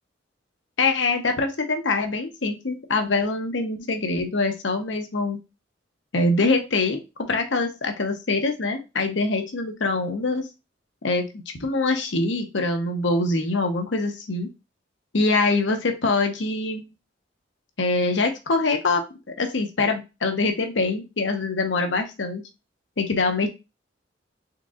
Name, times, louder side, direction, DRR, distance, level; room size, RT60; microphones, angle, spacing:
voice 1, 0.8-5.4 6.1-10.5 11.0-11.3 11.6-14.5 15.1-16.9 17.8-19.0 19.4-22.4 23.0-23.5, left 3 dB, 75° left, 5 dB, 0.9 m, -24 dB
4.5 x 3.7 x 2.4 m, 0.26 s
head